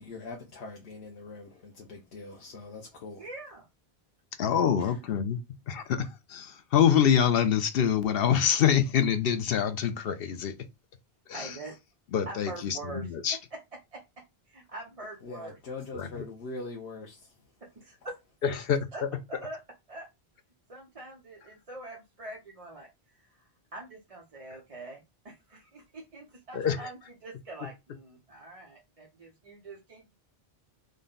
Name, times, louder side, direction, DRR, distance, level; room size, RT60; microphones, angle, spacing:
voice 1, 0.0-3.2 15.2-17.4, left 3 dB, 90° left, 1.0 m, -42 dB
voice 2, 3.2-3.7 4.8-5.0 11.3-11.8 12.3-13.6 13.9-14.0 14.5-15.6 17.6-18.2 18.5-18.6 18.9-19.6 19.9-20.1 20.7-30.1, right 2 dB, 40° right, 0.8 m, -44 dB
voice 3, 4.4-5.4 5.7-10.5 11.3-11.5 12.1-13.4 15.9-16.1 18.4-18.8 26.5-26.9, left 8 dB, 70° left, 0.8 m, -25 dB
3.9 x 2.2 x 3.8 m
omnidirectional pair, 1.0 m